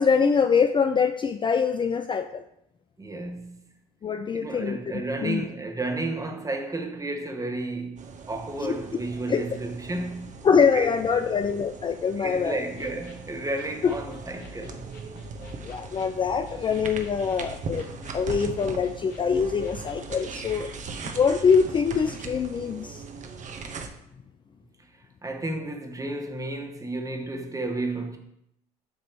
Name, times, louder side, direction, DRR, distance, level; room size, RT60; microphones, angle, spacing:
voice 1, 0.0-2.4 4.0-4.8 5.2-5.4 8.6-8.7 9.3-9.5 10.4-12.6 13.8-13.9 15.6-17.9 18.1-20.8 21.1-23.0, left 6 dB, 25° left, 0.4 m, -24 dB
voice 2, 3.0-3.6 4.3-10.3 10.7-10.9 12.2-14.9 20.3-20.4 24.8-24.9 25.2-28.2, right 2 dB, 20° right, 1.2 m, -32 dB
sound 1, 8.0-23.9, right 4 dB, 40° right, 1.0 m, -40 dB
sound 2, 12.5-22.1, left 3 dB, 60° left, 1.9 m, -47 dB
8.1 x 3.0 x 5.9 m
hypercardioid pair, 75°, 19 cm